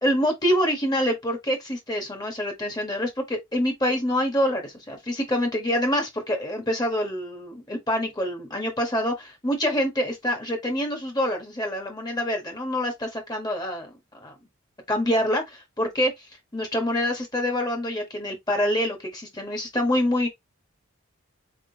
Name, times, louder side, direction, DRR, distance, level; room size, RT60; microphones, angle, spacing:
voice 1, 0.0-13.9 14.2-14.3 14.9-16.1 16.5-20.3, equal, 20° left, 1.4 m, -26 dB
4.4 x 3.7 x 2.8 m
head